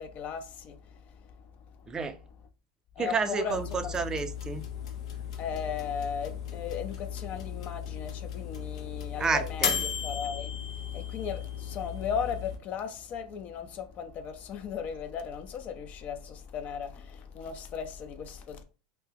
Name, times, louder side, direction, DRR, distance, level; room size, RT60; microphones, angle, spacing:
voice 1, 0.0-1.3 3.0-4.0 5.4-10.5 10.8-18.6, left 7 dB, 45° left, 0.5 m, -37 dB
voice 2, 1.9-2.2 3.0-4.7 9.2-9.8, right 5 dB, 20° right, 0.4 m, -30 dB
sound 1, 3.5-12.6, left 8 dB, 80° left, 0.7 m, -36 dB
2.7 x 2.0 x 3.6 m
hypercardioid pair, 110°, 3 cm